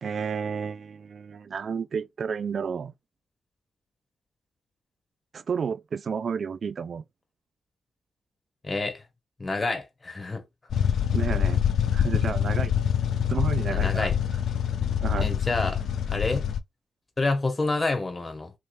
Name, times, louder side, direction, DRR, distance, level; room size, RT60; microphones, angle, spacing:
voice 1, 0.0-2.9 5.3-7.0 11.1-11.6 11.9-12.7 13.3-14.1 15.0-15.3, right 6 dB, 60° right, 0.3 m, -31 dB
voice 2, 8.6-9.0 9.4-10.4 13.7-14.2 15.2-15.8 16.1-16.4 17.2-18.5, left 3 dB, 35° left, 1.1 m, -28 dB
sound 1, 10.7-16.6, left 9 dB, 75° left, 0.3 m, -25 dB
3.1 x 3.1 x 2.6 m
supercardioid pair, 45°, 0 cm